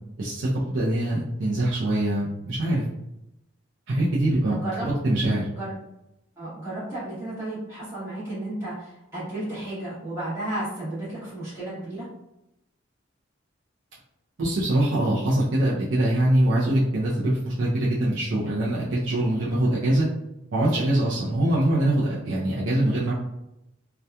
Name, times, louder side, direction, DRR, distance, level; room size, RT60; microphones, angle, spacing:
voice 1, 0.2-2.8 3.9-5.5 14.4-20.1 20.5-23.1, right 1 dB, 65° right, -7 dB, 0.5 m, -23 dB
voice 2, 4.5-4.9 5.5-5.7 6.4-12.1, right 1 dB, 15° right, -12 dB, 1.0 m, -33 dB
2.7 x 2.2 x 2.2 m, 0.88 s
head